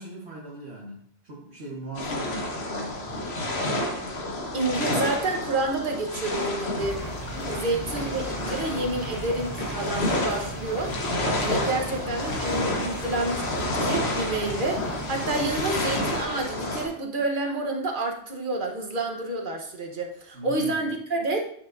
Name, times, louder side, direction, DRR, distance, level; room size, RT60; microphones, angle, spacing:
voice 1, 0.0-3.4 7.4-7.8 20.3-20.8, right 2 dB, 65° right, -5 dB, 1.6 m, -40 dB
sound 1, 1.9-16.8, left 1 dB, 65° left, 1.4 m, -30 dB
voice 2, 4.5-7.0 7.5-10.9 11.4-21.4, right 2 dB, 45° right, 2 dB, 1.2 m, -29 dB
sound 2, 6.8-16.2, right 1 dB, 35° left, 1.3 m, -38 dB
9.5 x 5.8 x 2.6 m, 0.64 s
omnidirectional pair, 1.2 m